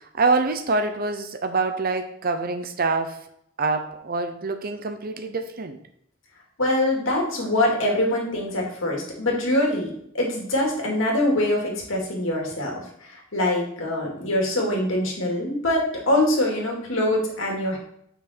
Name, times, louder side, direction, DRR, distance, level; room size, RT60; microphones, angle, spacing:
voice 1, 0.2-3.2 3.6-5.8, right 3 dB, 45° right, 7 dB, 0.8 m, -25 dB
voice 2, 6.6-12.7 13.1-17.8, left 1 dB, 70° left, -1 dB, 2.4 m, -24 dB
7.2 x 5.6 x 4.3 m, 0.70 s
head